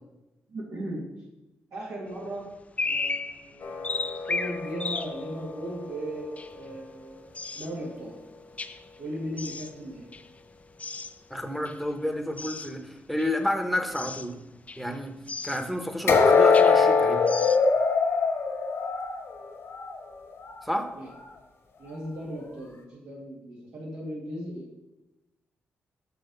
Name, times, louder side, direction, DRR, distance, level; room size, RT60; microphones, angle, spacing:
voice 1, 0.5-1.1 1.7-2.5 2.8-4.0 4.3-7.3 7.5-8.2 9.0-10.1 20.9-21.1 21.8-24.8, right 1 dB, 80° right, -7 dB, 2.1 m, -37 dB
sound 1, 2.1-2.2 2.6-5.4 6.0-6.7 7.3-7.9 8.6-8.9 9.4-9.8 10.1-11.2 11.7-11.9 12.4-12.8 13.2-13.5 13.9-14.3 14.7-15.0 15.3-15.7 16.4-16.9 17.3-17.6, left 3 dB, 30° left, 0.5 m, -34 dB
sound 2, 3.6-6.7 16.1-20.0 20.4-20.6 21.2-21.3, left 5 dB, 70° left, 1.5 m, -24 dB
voice 2, 11.3-14.4 14.8-15.1 15.4-17.3 20.6-20.9, left 1 dB, ahead, 4 dB, 1.1 m, -30 dB
6.4 x 5.8 x 5.4 m, 1.0 s
cardioid pair, 75°, 5 cm